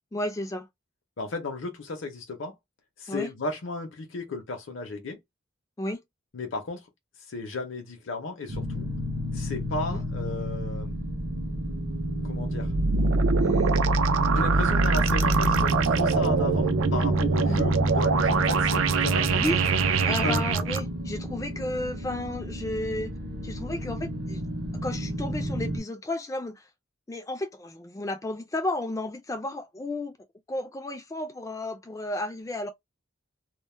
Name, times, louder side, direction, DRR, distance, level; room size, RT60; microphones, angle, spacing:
voice 1, 0.1-0.7 3.1-3.3 5.8-6.0 9.9-10.0 13.4-13.8 17.4-17.6 19.4-19.6 20.1-23.1 23.4-24.4 24.8-26.7 27.1-30.1 30.5-32.7, left 1 dB, 15° left, 0.3 m, -33 dB
voice 2, 1.2-2.5 3.0-5.2 6.3-6.9 7.3-8.9 9.3-11.0 12.2-12.7 14.3-19.5 20.2-20.4, left 3 dB, 70° left, 0.6 m, -34 dB
sound 1, 8.5-25.8, equal, 50° right, 0.7 m, -30 dB
sound 2, 12.6-20.8, right 4 dB, 80° right, 0.4 m, -24 dB
2.2 x 2.1 x 3.1 m
head